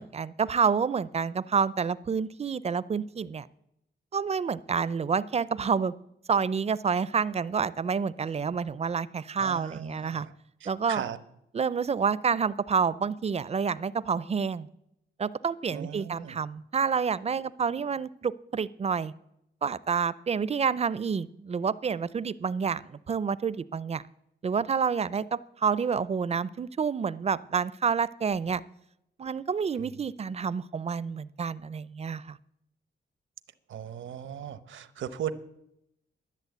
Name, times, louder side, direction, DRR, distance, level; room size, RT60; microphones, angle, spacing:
voice 1, 0.0-3.5 4.1-5.9 6.3-10.3 10.7-11.0 11.5-14.7 15.2-19.1 19.6-24.0 24.4-28.6 29.2-32.4, right 6 dB, 35° right, 19 dB, 0.4 m, -28 dB
voice 2, 9.4-10.3 10.6-11.2 15.7-16.4 29.8-29.9 33.7-35.3, right 9 dB, 90° right, 14 dB, 0.8 m, -37 dB
11.0 x 11.0 x 7.9 m, 0.82 s
wide cardioid pair, 115°, 19 cm